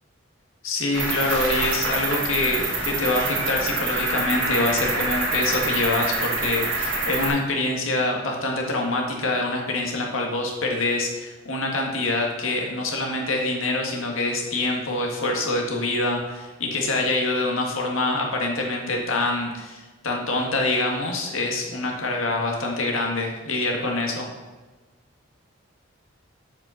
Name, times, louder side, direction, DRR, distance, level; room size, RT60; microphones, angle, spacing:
voice 1, 0.6-24.3, left 2 dB, 85° left, 1 dB, 1.7 m, -25 dB
Cricket, 0.9-7.3, right 2 dB, 75° right, 2.6 m, -26 dB
7.5 x 5.6 x 5.7 m, 1.3 s
head